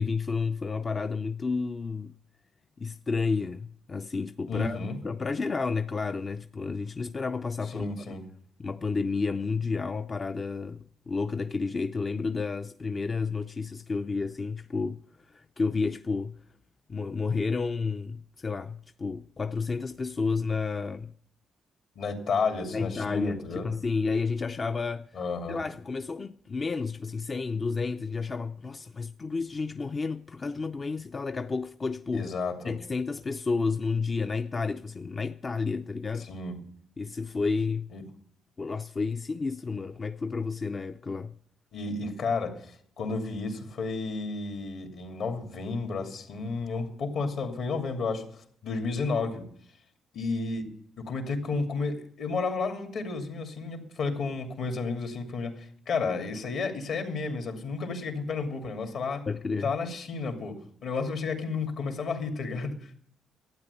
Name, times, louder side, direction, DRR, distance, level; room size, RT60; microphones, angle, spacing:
voice 1, 0.0-2.1 2.8-7.9 8.6-16.4 16.9-21.1 22.6-25.2 25.5-32.3 32.6-36.3 37.0-37.9 38.6-41.3 59.3-59.7, left 4 dB, 35° left, 0.5 m, -31 dB
voice 2, 4.5-5.0 7.7-8.3 22.0-23.7 25.1-25.6 32.1-32.7 36.2-36.6 37.9-38.0 41.7-48.2 48.6-49.5 50.1-50.7 51.0-59.2 59.6-62.9, left 4 dB, 65° left, 2.6 m, -32 dB
12.0 x 9.0 x 8.3 m
cardioid pair, 90°, 0 cm